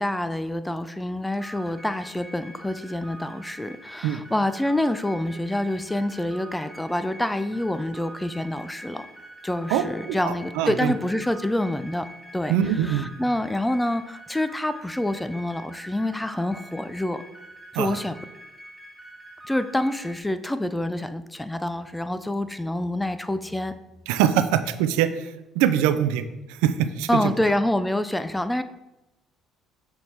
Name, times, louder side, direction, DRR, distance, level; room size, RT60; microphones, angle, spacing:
voice 1, 0.0-9.1 9.4-12.1 12.3-17.2 17.7-18.2 19.5-23.7 27.1-28.6, left 1 dB, 10° left, 12 dB, 0.4 m, -27 dB
sound 1, 1.4-20.2, right 1 dB, 10° right, 1.7 m, -45 dB
voice 2, 9.7-10.9 12.5-13.1 17.7-18.0 24.1-26.3 26.6-27.3, right 10 dB, 85° right, 11 dB, 0.4 m, -23 dB
6.2 x 3.5 x 4.3 m, 0.96 s
supercardioid pair, 80°, 0 cm